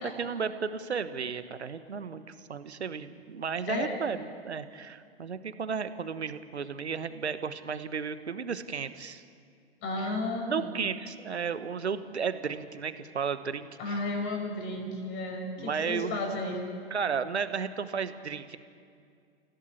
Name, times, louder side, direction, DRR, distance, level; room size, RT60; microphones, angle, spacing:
voice 1, 0.0-9.2 10.0-10.1 10.5-14.0 15.6-16.2 16.9-18.6, right 6 dB, 80° right, 12 dB, 1.3 m, -34 dB
voice 2, 3.7-4.0 9.8-10.7 13.8-16.7, left 2 dB, 35° left, 2 dB, 6.0 m, -33 dB
27.5 x 16.5 x 8.5 m, 2.3 s
figure-of-eight pair, 105°, 33 cm